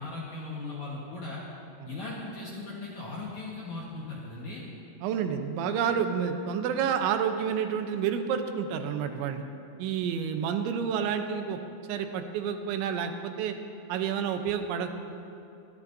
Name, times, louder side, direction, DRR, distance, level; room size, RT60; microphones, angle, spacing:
voice 1, 0.0-1.4 1.9-4.6, left 3 dB, 60° left, -4 dB, 2.0 m, -38 dB
voice 2, 5.0-9.4 9.8-11.6 11.9-13.6 13.9-14.9, right 7 dB, 85° right, 7 dB, 3.1 m, -29 dB
24.0 x 12.5 x 2.7 m, 2.6 s
omnidirectional pair, 5.2 m